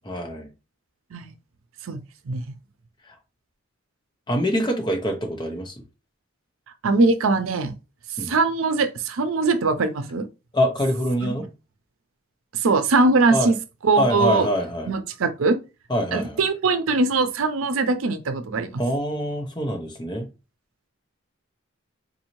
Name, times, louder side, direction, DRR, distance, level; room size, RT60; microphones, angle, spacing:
voice 1, 0.0-0.5 4.3-5.7 8.2-8.3 10.5-11.5 13.3-13.5 14.0-14.9 15.9-16.4 18.8-20.3, equal, 20° left, 0.7 m, -25 dB
voice 2, 1.8-2.5 6.8-7.7 8.2-10.3 11.2-11.3 12.5-13.6 13.8-14.5 14.9-15.6 16.1-18.8, right 3 dB, 90° right, 0.5 m, -21 dB
4.0 x 2.7 x 3.0 m
head